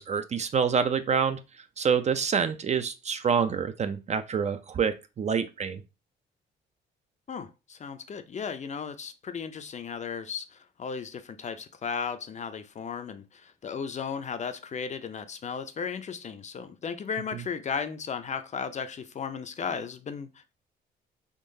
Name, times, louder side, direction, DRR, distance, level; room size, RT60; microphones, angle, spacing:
voice 1, 0.0-1.4 1.8-5.8 17.3-17.4, right 6 dB, 35° right, 0.4 m, -27 dB
voice 2, 7.3-20.5, left 6 dB, 35° left, 0.4 m, -35 dB
3.7 x 3.0 x 2.6 m
cardioid pair, 90°, 20 cm